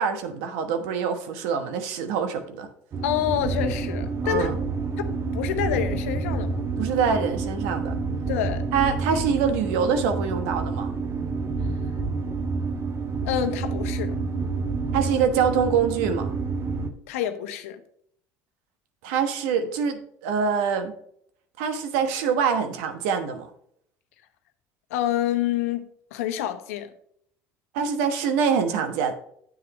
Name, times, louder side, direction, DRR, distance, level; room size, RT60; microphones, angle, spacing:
voice 1, 0.0-2.7 4.2-4.6 6.8-8.0 8.7-10.9 14.9-16.3 19.0-20.9 21.6-23.5 27.7-29.1, right 6 dB, 80° right, 8 dB, 1.2 m, -25 dB
sound 1, 2.9-16.9, right 4 dB, 40° right, 1.1 m, -28 dB
voice 2, 3.0-4.5 5.0-6.6 8.3-8.6 13.2-14.1 17.1-17.8 24.9-25.9 26.1-26.9, left 11 dB, 85° left, 8 dB, 1.0 m, -27 dB
9.7 x 7.7 x 3.2 m, 0.67 s
hypercardioid pair, 75°, 7 cm